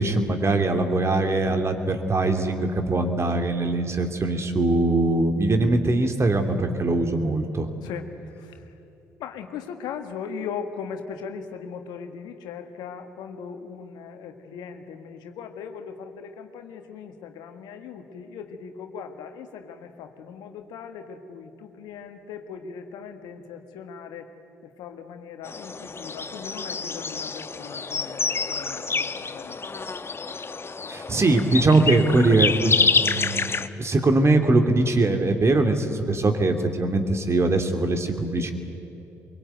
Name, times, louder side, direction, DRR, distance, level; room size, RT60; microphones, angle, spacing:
voice 1, 0.0-7.7 30.9-38.5, right 2 dB, 40° right, 6 dB, 2.9 m, -22 dB
voice 2, 7.8-8.7 9.2-24.3 24.6-29.9, left 6 dB, 70° left, 6 dB, 1.7 m, -39 dB
sound 1, 25.4-33.7, left 4 dB, 35° left, 1.1 m, -27 dB
24.0 x 23.0 x 9.2 m, 3.0 s
hypercardioid pair, 45°, 7 cm